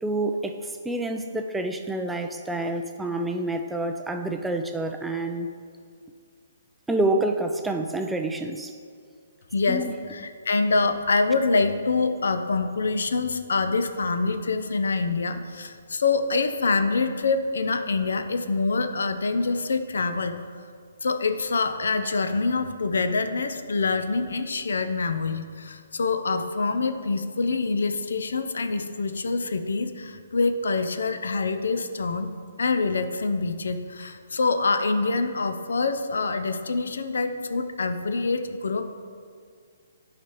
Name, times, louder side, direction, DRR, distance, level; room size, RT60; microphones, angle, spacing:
voice 1, 0.0-5.5 6.9-8.7 9.7-10.0, right 2 dB, 5° right, 5 dB, 0.3 m, -28 dB
voice 2, 9.5-20.4 21.0-32.3 32.6-38.9, left 3 dB, 75° left, 8 dB, 0.5 m, -25 dB
10.0 x 5.0 x 3.0 m, 2.1 s
hypercardioid pair, 140°, 0 cm